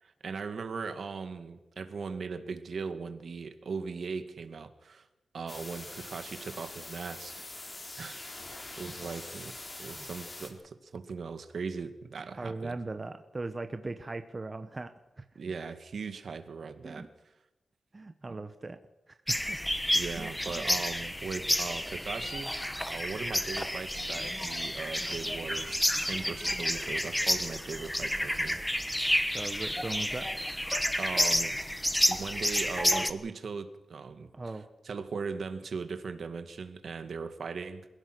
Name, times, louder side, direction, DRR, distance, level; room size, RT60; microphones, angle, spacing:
voice 1, 0.0-5.1 5.3-7.4 8.0-12.7 15.4-17.1 18.3-18.4 19.9-28.6 31.0-31.6 32.1-34.3 34.8-37.9, right 5 dB, 60° right, 10 dB, 1.9 m, -39 dB
sound 1, 5.5-10.5, left 2 dB, 30° left, 4.0 m, -44 dB
voice 2, 8.9-9.2 9.9-10.1 12.4-14.9 15.2-15.3 16.8-17.1 17.9-18.8 19.1-19.6 20.2-20.7 29.3-30.4 34.3-34.7, right 3 dB, 25° right, 8 dB, 1.1 m, -39 dB
sound 2, 19.3-33.1, equal, 5° left, 1.2 m, -30 dB
28.0 x 16.5 x 6.2 m, 0.98 s
wide cardioid pair, 145°, 0 cm